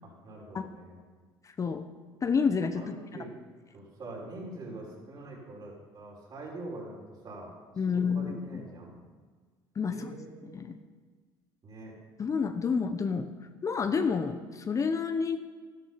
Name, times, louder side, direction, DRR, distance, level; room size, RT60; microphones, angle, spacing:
voice 1, 0.0-1.0 2.8-3.3 3.7-7.5 7.9-9.0 9.9-10.7 11.6-11.9, right 2 dB, 50° right, -3 dB, 5.6 m, -44 dB
voice 2, 1.4-1.8 2.2-3.0 7.8-8.6 9.8-10.1 10.4-10.8 12.2-13.3 13.6-15.4, left 5 dB, 35° left, 8 dB, 0.9 m, -29 dB
12.5 x 12.5 x 5.8 m, 1.5 s
supercardioid pair, 85°, 10 cm